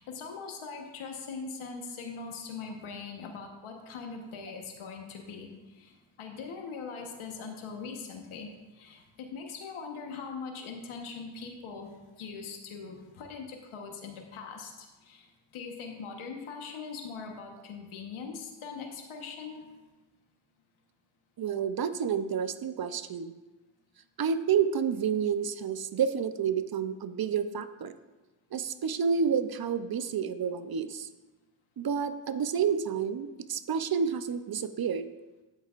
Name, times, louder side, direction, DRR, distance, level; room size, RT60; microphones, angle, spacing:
voice 1, 0.0-15.3 15.5-19.7, left 5 dB, 80° left, 2 dB, 1.3 m, -41 dB
voice 2, 21.4-23.3 24.2-27.9 28.5-31.1 31.8-35.1, right 7 dB, 50° right, 12 dB, 0.7 m, -29 dB
12.0 x 8.5 x 2.5 m, 1.1 s
cardioid pair, 55°, 49 cm